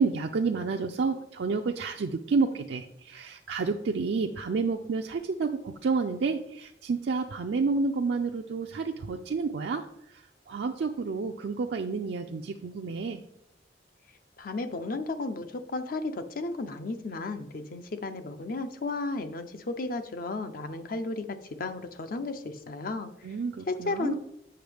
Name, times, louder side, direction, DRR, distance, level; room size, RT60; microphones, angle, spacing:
voice 1, 0.0-13.2 23.2-24.1, right 4 dB, 70° right, 3 dB, 0.4 m, -30 dB
voice 2, 14.4-23.1 23.7-24.1, left 3 dB, 50° left, 9 dB, 0.6 m, -34 dB
7.8 x 5.4 x 3.4 m, 0.79 s
head